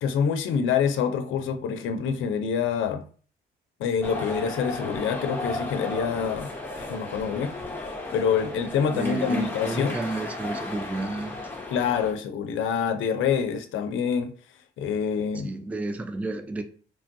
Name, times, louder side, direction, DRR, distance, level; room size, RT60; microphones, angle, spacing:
voice 1, 0.0-3.0 3.8-7.5 8.1-10.0 11.7-14.3 14.8-15.5, left 7 dB, 80° left, 0.5 m, -26 dB
sound 1, 4.0-12.1, left 2 dB, 10° left, 0.7 m, -35 dB
voice 2, 8.9-11.5 15.4-16.6, right 2 dB, 5° right, 0.3 m, -31 dB
3.1 x 2.2 x 2.6 m
cardioid pair, 90°, 20 cm